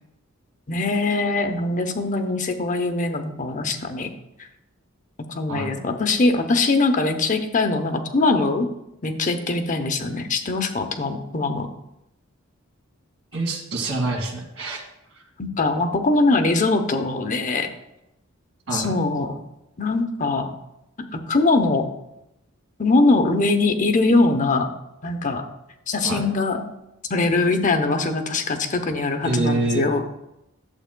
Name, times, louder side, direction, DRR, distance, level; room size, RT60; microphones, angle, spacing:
voice 1, 0.7-4.1 5.3-8.7 9.0-11.7 15.4-17.7 18.7-19.4 19.8-20.5 21.0-21.9 22.8-24.7 25.0-25.4 25.9-26.6 27.1-30.0, left 3 dB, 35° left, 7 dB, 0.7 m, -22 dB
voice 2, 5.5-5.9 13.3-14.8 15.2-15.3 18.7-19.0 26.0-26.3 29.2-29.9, right 2 dB, 75° right, 1 dB, 1.6 m, -26 dB
11.5 x 7.6 x 2.2 m, 0.87 s
head